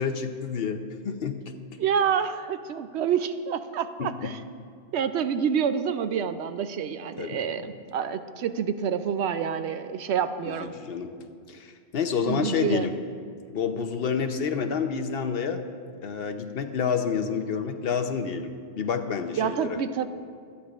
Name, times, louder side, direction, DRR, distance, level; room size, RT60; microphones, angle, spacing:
voice 1, 0.0-1.4 4.0-4.3 7.2-7.4 10.5-11.1 11.5-12.9 13.5-15.6 16.0-19.8, left 6 dB, 60° left, 8 dB, 0.9 m, -29 dB
voice 2, 1.8-4.4 4.9-10.7 12.2-12.9 19.4-20.1, right 7 dB, 75° right, 11 dB, 0.8 m, -28 dB
24.5 x 9.7 x 2.4 m, 2.1 s
omnidirectional pair, 1.2 m